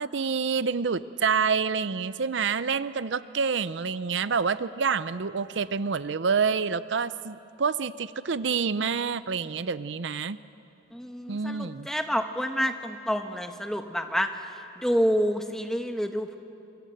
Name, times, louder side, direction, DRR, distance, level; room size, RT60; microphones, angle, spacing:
voice 1, 0.0-10.4 11.3-11.9, right 5 dB, 75° right, 15 dB, 0.6 m, -27 dB
voice 2, 10.9-14.3 14.8-16.4, equal, ahead, 5 dB, 1.2 m, -28 dB
26.5 x 24.5 x 7.8 m, 2.7 s
head